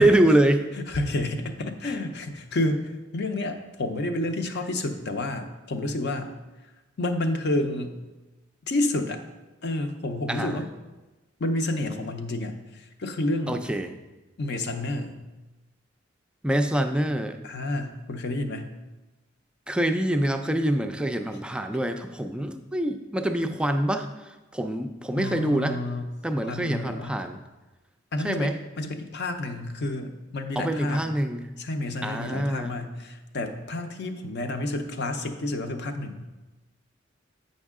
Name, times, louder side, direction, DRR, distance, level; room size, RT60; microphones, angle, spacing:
voice 1, 0.0-0.7 10.3-10.6 13.5-13.9 16.4-17.4 19.7-25.8 26.2-27.4 28.2-28.5 30.6-31.5 32.0-32.7, right 1 dB, 5° right, 6 dB, 0.3 m, -25 dB
voice 2, 0.7-6.3 7.0-8.0 8.7-9.2 9.6-10.7 11.4-13.6 14.4-15.2 17.4-18.7 25.2-26.1 26.4-27.2 28.1-31.1 31.6-36.2, left 2 dB, 60° left, 6 dB, 0.6 m, -30 dB
8.1 x 5.4 x 3.6 m, 1.1 s
head